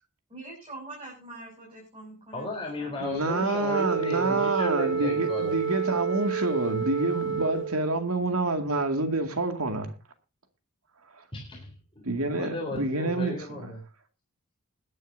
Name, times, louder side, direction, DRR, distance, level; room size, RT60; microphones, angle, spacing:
voice 1, 0.3-3.2, right 2 dB, 25° right, 7.0 m, -44 dB
voice 2, 2.3-5.6 11.3-13.8, left 1 dB, 25° left, 3.8 m, -35 dB
voice 3, 3.0-9.9 12.0-13.3, right 2 dB, 80° right, 2.2 m, -27 dB
Wind instrument woodwind instrument, 3.7-8.1, right 6 dB, 55° right, 1.2 m, -30 dB
21.5 x 11.0 x 2.7 m
head